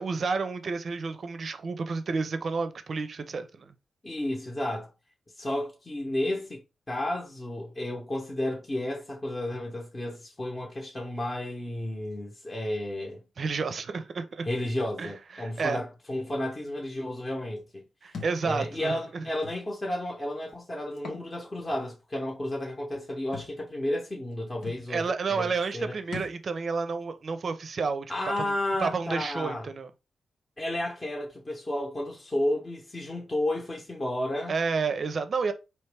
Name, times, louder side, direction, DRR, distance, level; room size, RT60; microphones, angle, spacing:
voice 1, 0.0-3.7 13.4-14.4 15.0-15.8 18.0-19.2 24.9-28.1 28.4-28.5 28.8-29.9 34.5-35.5, right 4 dB, 45° right, 0.6 m, -30 dB
voice 2, 4.0-4.9 5.4-6.6 6.9-13.2 14.4-17.8 18.4-25.9 28.1-29.7 30.6-34.5, left 1 dB, 20° left, 0.9 m, -32 dB
Thump thud, 18.1-18.4 19.4-19.6 20.9-21.3 21.7-21.8 23.3-23.5 24.3-24.4 24.6-24.9 26.1-26.4, left 4 dB, 70° left, 1.2 m, -39 dB
4.5 x 3.0 x 3.4 m
wide cardioid pair, 155°, 0 cm